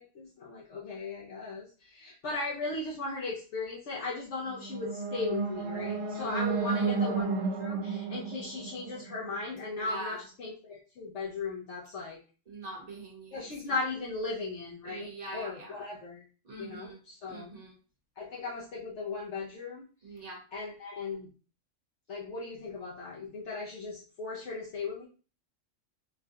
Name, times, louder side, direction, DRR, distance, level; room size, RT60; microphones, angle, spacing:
voice 1, 0.0-12.2 13.3-16.2 16.6-17.5 18.2-20.2 20.5-21.3 22.1-25.1, left 3 dB, 65° left, -3 dB, 1.0 m, -37 dB
sound 1, 4.5-9.6, right 4 dB, 80° right, 1.0 m, -32 dB
voice 2, 6.1-7.1 9.7-10.2 12.5-13.7 14.8-15.9 16.4-17.0 17.3-17.8 20.0-20.4, right 2 dB, 35° right, -2 dB, 1.1 m, -44 dB
4.4 x 2.2 x 2.7 m, 0.37 s
omnidirectional pair, 1.4 m